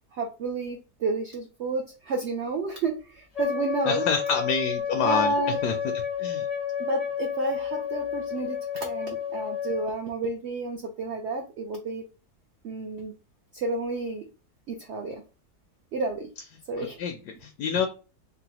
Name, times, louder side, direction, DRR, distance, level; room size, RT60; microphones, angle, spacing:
voice 1, 0.1-4.0 5.0-5.6 6.8-12.0 12.6-13.1 13.5-14.3 14.7-15.2 15.9-16.3 16.7-17.0, right 3 dB, 70° right, 3 dB, 0.6 m, -30 dB
Wind instrument woodwind instrument, 3.3-9.9, left 8 dB, 55° left, 0.4 m, -31 dB
voice 2, 3.9-5.3 5.6-5.7 6.2-6.5 16.8-17.9, left 6 dB, 80° left, 4 dB, 1.1 m, -27 dB
3.9 x 2.1 x 2.8 m, 0.34 s
omnidirectional pair, 1.8 m